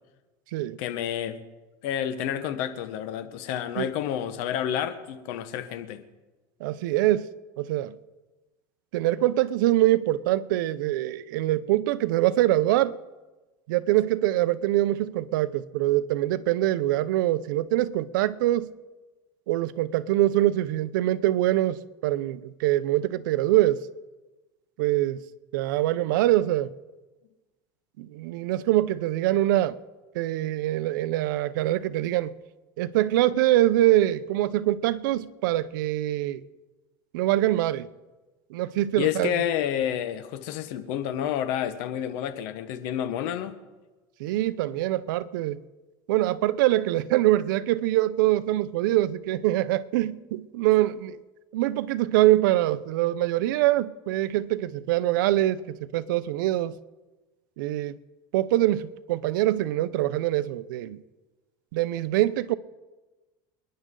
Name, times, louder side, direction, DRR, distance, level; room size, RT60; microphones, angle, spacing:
voice 1, 0.8-1.4 1.8-6.0 39.0-43.6, left 10 dB, 65° left, 1.4 m, -29 dB
voice 2, 6.6-7.3 7.6-8.0 8.9-13.0 13.7-18.7 19.5-23.9 24.8-25.2 25.5-26.7 28.0-29.8 30.1-32.3 32.8-36.4 37.1-37.9 38.5-39.3 44.2-45.6 46.1-51.2 51.5-56.8 57.6-58.0 58.3-61.0 61.7-62.6, right 15 dB, 85° right, 0.7 m, -24 dB
28.0 x 10.5 x 3.9 m
supercardioid pair, 155°, 10 cm